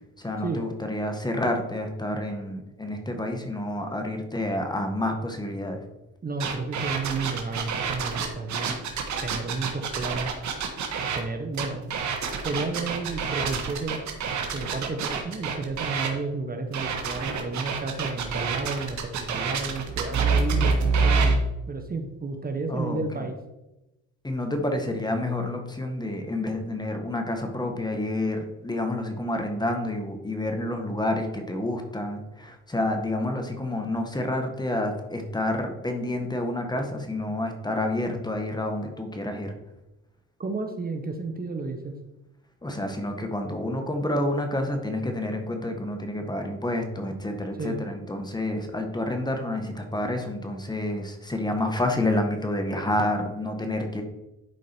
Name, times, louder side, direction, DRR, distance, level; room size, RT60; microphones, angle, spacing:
voice 1, 0.2-5.8 22.7-23.3 24.2-39.5 42.6-54.0, left 1 dB, 15° left, 4 dB, 1.5 m, -29 dB
voice 2, 6.2-8.8 9.2-10.3 11.1-11.9 12.4-14.0 14.5-23.4 40.4-41.9 47.6-47.8, right 3 dB, 30° right, 5 dB, 1.1 m, -32 dB
sound 1, 6.4-11.2 11.5-16.1 16.7-21.4, right 5 dB, 70° right, 1.5 m, -27 dB
11.0 x 4.7 x 4.5 m, 0.96 s
cardioid pair, 90°, 30 cm